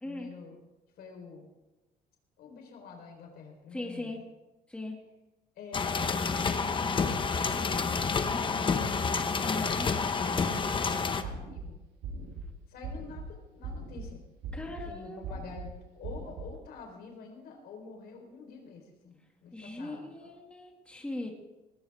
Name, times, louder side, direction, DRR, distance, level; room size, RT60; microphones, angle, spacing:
voice 1, 0.0-0.6 1.0-1.4 2.4-4.1 5.6-6.0 6.5-7.8 8.1-11.8 12.7-14.2 14.8-20.3, left 4 dB, 70° left, 2 dB, 4.3 m, -47 dB
voice 2, 3.7-4.2 4.7-5.0 8.3-8.5 9.4-9.9 14.5-15.2 19.5-21.3, left 2 dB, 5° left, 0 dB, 2.3 m, -39 dB
sound 1, 5.7-11.2, left 5 dB, 30° left, 1.1 m, -29 dB
sound 2, 11.2-11.6 12.0-12.4 12.8-13.2 13.6-14.1 14.4-14.9 15.2-15.7 16.0-16.5, right 3 dB, 80° right, 2.8 m, -39 dB
19.0 x 16.5 x 3.6 m, 1.0 s
cardioid pair, 110°, 17 cm